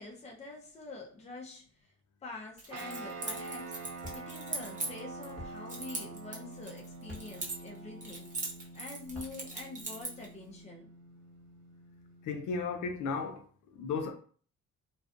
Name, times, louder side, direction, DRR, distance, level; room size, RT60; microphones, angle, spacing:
voice 1, 0.0-1.9 2.2-8.3 8.7-10.9, left 3 dB, 20° left, 0.6 m, -46 dB
Keys jangling, 2.6-5.3 5.7-7.8 8.0-10.3, right 3 dB, 25° right, 0.8 m, -40 dB
sound 1, 2.7-13.4, right 3 dB, 65° right, 0.9 m, -47 dB
sound 2, 4.0-4.2 5.4-5.5 7.0-7.3 9.0-9.3, left 1 dB, ahead, 1.1 m, -45 dB
voice 2, 12.2-13.5 13.7-14.1, left 4 dB, 80° left, 0.6 m, -34 dB
2.5 x 2.3 x 2.4 m
cardioid pair, 90°, 30 cm